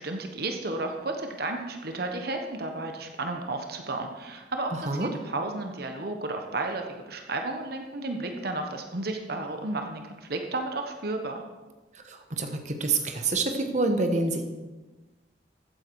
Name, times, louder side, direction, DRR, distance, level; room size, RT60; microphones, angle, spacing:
voice 1, 0.0-4.7 5.0-11.4, right 2 dB, 60° right, 4 dB, 1.2 m, -33 dB
voice 2, 4.7-5.1 11.9-14.4, right 3 dB, 40° right, 5 dB, 1.4 m, -27 dB
14.5 x 9.5 x 4.8 m, 1.2 s
head